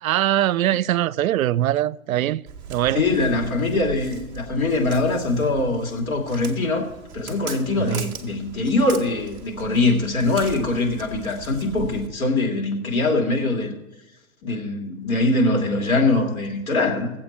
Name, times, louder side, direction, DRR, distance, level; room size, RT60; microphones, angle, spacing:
voice 1, 0.0-2.4 2.7-3.1 7.9-8.1, right 13 dB, 75° right, 0.5 m, -22 dB
Walk footsteps, 2.5-12.1, right 6 dB, 10° right, 0.3 m, -40 dB
voice 2, 2.9-6.9 7.1-13.7 14.4-17.1, left 2 dB, 80° left, 2.8 m, -22 dB
18.5 x 7.7 x 4.4 m
hypercardioid pair, 125°, 42 cm